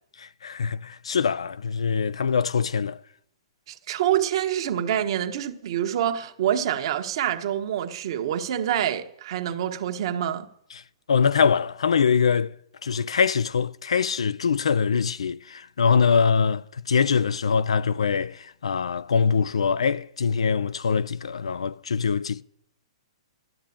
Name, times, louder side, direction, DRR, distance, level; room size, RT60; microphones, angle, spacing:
voice 1, 0.2-3.0 11.1-12.5 12.8-22.4, left 6 dB, 90° left, 0.5 m, -23 dB
voice 2, 3.7-10.5, right 10 dB, 55° right, 1.2 m, -26 dB
12.5 x 7.5 x 8.6 m
hypercardioid pair, 140°, 3 cm